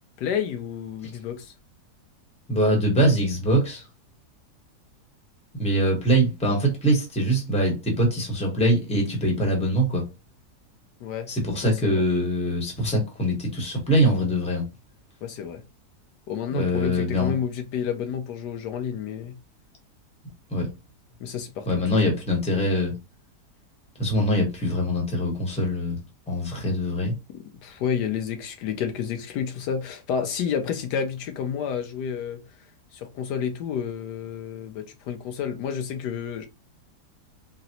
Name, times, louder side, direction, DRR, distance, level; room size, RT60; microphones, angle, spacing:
voice 1, 0.2-1.5 11.0-11.3 11.6-12.0 15.2-15.6 16.3-19.3 21.2-22.0 27.6-32.4 32.9-36.5, left 7 dB, 90° left, 1.3 m, -30 dB
voice 2, 2.5-3.8 5.6-10.0 11.3-14.6 16.5-17.3 20.5-20.7 21.7-22.9 24.0-26.0 26.3-27.2, equal, 5° left, 0.8 m, -23 dB
3.9 x 2.0 x 2.8 m
omnidirectional pair, 1.7 m